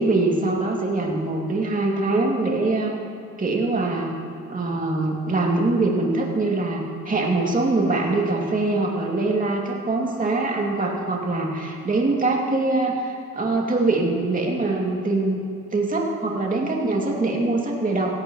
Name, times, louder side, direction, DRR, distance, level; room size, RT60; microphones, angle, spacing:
voice 1, 0.0-3.0 3.4-4.1 4.5-15.4 15.7-18.1, right 2 dB, 25° right, -1 dB, 2.5 m, -23 dB
16.5 x 15.5 x 3.1 m, 2.7 s
cardioid pair, 90°, 30 cm